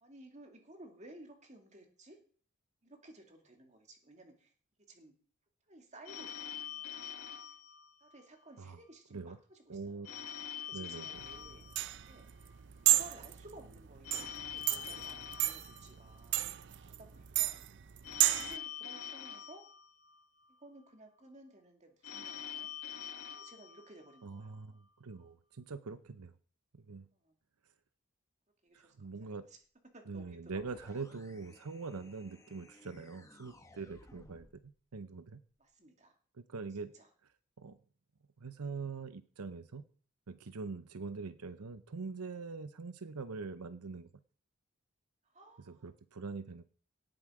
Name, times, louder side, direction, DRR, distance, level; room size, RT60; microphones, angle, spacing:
voice 1, 0.0-2.2 2.8-4.5 4.9-5.1 5.7-7.0 8.0-11.6 12.1-12.2 12.8-16.5 17.0-17.7 18.3-19.6 20.5-22.7 23.3-24.8 27.1-27.4 28.6-29.6 29.9-30.6 35.6-36.2 36.9-37.1 45.2-45.9, right 1 dB, 30° right, 4 dB, 2.3 m, -56 dB
Telephone, 6.0-8.5 10.0-12.5 14.0-16.5 18.0-20.5 22.0-24.5, left 9 dB, 85° left, 2.1 m, -45 dB
voice 2, 9.7-10.3 10.7-11.2 24.2-26.4 26.7-27.1 28.7-29.4 30.1-34.5 34.9-35.4 36.4-36.9 37.6-37.8 38.4-39.8 40.3-44.1 45.7-46.6, right 4 dB, 85° right, 12 dB, 0.7 m, -43 dB
sound 1, 11.2-18.6, right 15 dB, 55° right, 0.5 m, -33 dB
sound 2, 30.5-34.7, left 1 dB, 15° left, 1.0 m, -59 dB
18.0 x 7.6 x 4.9 m, 0.44 s
head